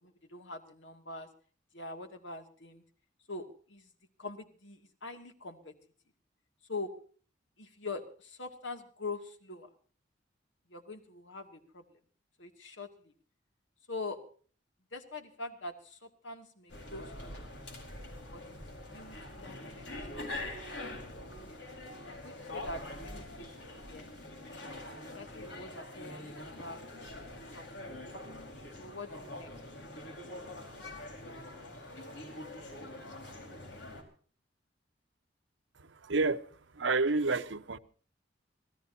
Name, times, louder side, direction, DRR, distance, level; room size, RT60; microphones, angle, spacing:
voice 1, 0.0-1.3 1.7-2.8 3.3-3.9 4.2-5.7 6.7-6.9 7.6-9.7 10.7-12.0 12.4-13.1 13.9-14.2 14.9-17.4 18.3-18.4 18.9-21.6 22.1-23.5 23.9-24.1 25.1-26.8 27.5-27.7 28.8-29.6, left 3 dB, 90° left, 2.4 m, -44 dB
sound 1, 16.7-34.0, left 1 dB, 70° left, 4.5 m, -44 dB
voice 2, 36.1-36.4 36.8-37.8, right 3 dB, 90° right, 1.0 m, -28 dB
26.0 x 17.0 x 2.8 m
head